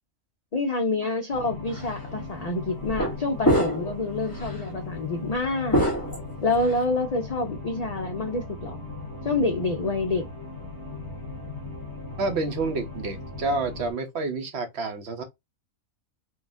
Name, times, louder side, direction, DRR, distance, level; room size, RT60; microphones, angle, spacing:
voice 1, 0.5-5.8 6.4-8.8 9.2-10.3, left 2 dB, 80° left, 0.3 m, -27 dB
sound 1, 1.3-13.9, left 3 dB, 15° right, 1.1 m, -38 dB
sound 2, 1.7-1.9 2.8-3.1 3.4-4.0 4.3-4.5 5.7-6.8, equal, 20° left, 0.8 m, -24 dB
voice 2, 12.2-15.2, right 3 dB, 60° right, 0.9 m, -29 dB
3.7 x 2.4 x 2.4 m
omnidirectional pair, 1.4 m